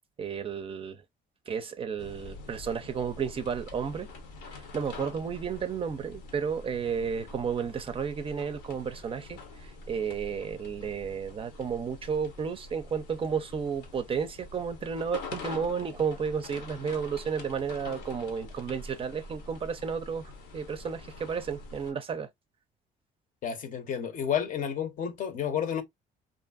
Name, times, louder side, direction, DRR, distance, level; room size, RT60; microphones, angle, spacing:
voice 1, 0.2-1.0 1.5-4.1 4.5-22.3, right 6 dB, 35° right, 0.4 m, -32 dB
sound 1, 2.0-21.9, left 3 dB, 85° left, 0.9 m, -45 dB
voice 2, 23.4-25.8, left 8 dB, 50° left, 0.7 m, -31 dB
2.5 x 2.5 x 2.3 m
cardioid pair, 110°, 17 cm